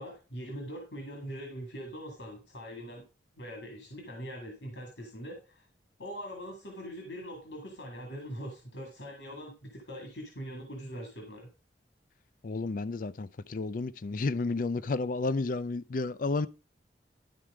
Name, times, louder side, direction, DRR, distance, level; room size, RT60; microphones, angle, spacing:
voice 1, 0.0-3.0 3.4-5.7 6.0-11.5, equal, 80° left, 2.2 m, -42 dB
voice 2, 12.4-16.5, left 3 dB, 50° left, 0.5 m, -31 dB
12.0 x 4.5 x 4.9 m
head